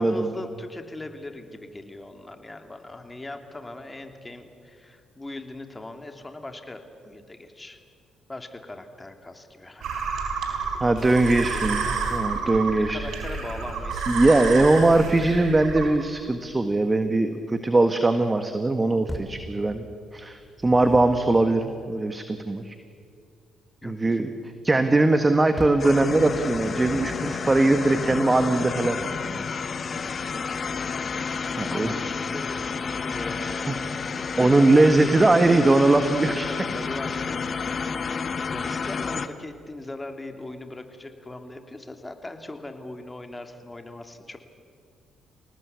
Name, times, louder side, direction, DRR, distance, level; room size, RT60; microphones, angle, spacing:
voice 1, 0.0-7.8 8.3-10.0 11.0-12.1 12.7-14.1 23.8-24.2 31.7-32.7 33.0-33.8 34.1-36.0 36.5-37.4 38.4-44.4, left 2 dB, 20° left, 6 dB, 3.0 m, -39 dB
sound 1, 9.8-15.9, right 5 dB, 70° right, 4.1 m, -30 dB
voice 2, 10.8-11.8 12.1-13.0 14.1-19.9 20.1-22.8 23.8-24.3 24.6-29.4 30.0-30.1 31.6-32.0 33.7-33.8 34.4-36.5, right 2 dB, 25° right, 8 dB, 1.7 m, -21 dB
sound 2, 19.1-19.5 20.4-21.4 25.6-25.9 26.5-27.3, equal, ahead, 3.2 m, -38 dB
sound 3, 25.8-39.3, left 5 dB, 45° left, 1.4 m, -30 dB
27.5 x 18.5 x 8.4 m, 2.2 s
hypercardioid pair, 50°, 0 cm